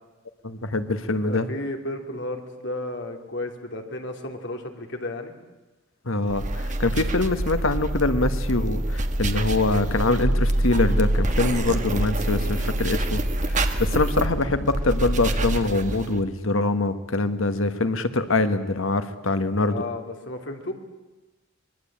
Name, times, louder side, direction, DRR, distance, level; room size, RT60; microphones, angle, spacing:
voice 1, 0.4-1.5 6.1-13.2 13.5-19.8, left 2 dB, 75° left, 10 dB, 1.6 m, -24 dB
voice 2, 1.2-5.3 11.4-11.9 19.7-20.7, left 1 dB, 60° left, 4 dB, 3.1 m, -33 dB
sound 1, 6.3-16.2, right 1 dB, 35° right, 1.7 m, -25 dB
24.5 x 21.5 x 8.8 m, 1.2 s
head